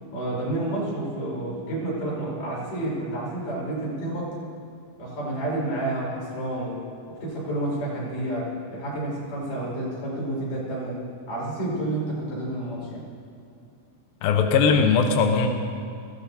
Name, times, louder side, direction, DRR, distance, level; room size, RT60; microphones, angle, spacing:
voice 1, 0.1-4.3 5.0-6.8 7.1-11.0 11.3-13.1, right 1 dB, 40° left, -6 dB, 6.7 m, -30 dB
voice 2, 14.2-15.5, left 5 dB, 85° left, 4 dB, 2.0 m, -19 dB
20.0 x 16.5 x 4.2 m, 2.5 s
omnidirectional pair, 5.8 m